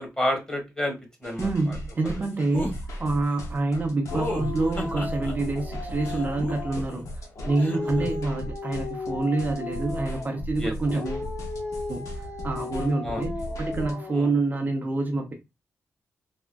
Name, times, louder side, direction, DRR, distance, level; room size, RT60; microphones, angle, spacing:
voice 1, 0.0-1.8 10.6-10.7 13.0-13.2 14.1-14.3, left 1 dB, 15° left, 1.3 m, -30 dB
sound 1, 1.2-13.9, equal, 80° left, 0.6 m, -37 dB
voice 2, 1.4-7.1 7.5-11.3 11.9-13.3 13.6-15.3, right 3 dB, 35° right, 0.6 m, -27 dB
sound 2, 2.5-2.8 4.1-5.3 6.0-7.0 7.6-8.1, left 2 dB, 35° left, 0.9 m, -33 dB
Dog, 4.1-6.9 7.3-10.4 10.8-14.4, left 3 dB, 60° left, 1.1 m, -36 dB
3.5 x 2.1 x 2.2 m
cardioid pair, 90°, 5 cm